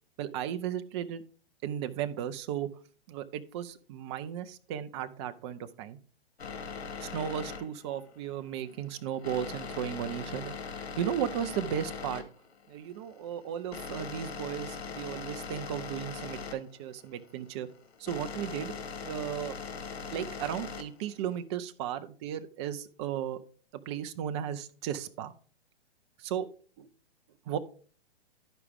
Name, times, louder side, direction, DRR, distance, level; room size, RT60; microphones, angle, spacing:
voice 1, 0.2-1.2 1.6-2.7 3.1-6.0 7.0-10.5 11.0-12.2 12.7-17.7 18.0-18.7 19.0-19.6 20.1-23.4 23.7-25.3 26.2-26.5 26.8-26.9 27.5-27.6, right 10 dB, 25° right, 10 dB, 0.5 m, -35 dB
sound 1, 6.4-21.4, left 5 dB, 80° left, 1.3 m, -41 dB
12.0 x 5.0 x 3.5 m, 0.42 s
hypercardioid pair, 130°, 32 cm